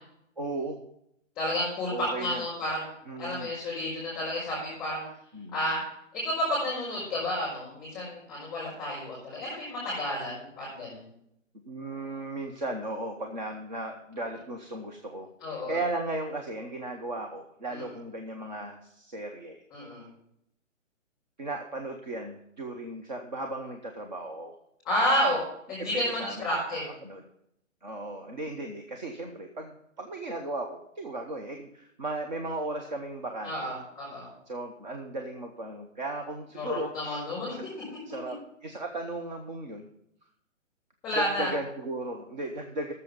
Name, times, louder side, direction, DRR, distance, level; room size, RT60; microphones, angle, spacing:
voice 1, 0.4-0.8 1.9-2.4 3.1-3.5 5.3-5.6 11.7-19.6 21.4-24.6 25.9-27.2 27.8-33.7 34.5-37.6 38.1-39.9 41.2-42.9, right 2 dB, 35° right, 4 dB, 0.8 m, -36 dB
voice 2, 1.3-5.1 5.5-5.8 6.1-11.1 15.4-15.8 17.7-17.9 19.7-20.1 24.8-25.4 25.7-26.9 33.4-34.3 36.6-37.5 41.0-41.5, left 1 dB, 10° left, -8 dB, 4.8 m, -31 dB
13.5 x 7.0 x 5.4 m, 0.77 s
hypercardioid pair, 170°, 39 cm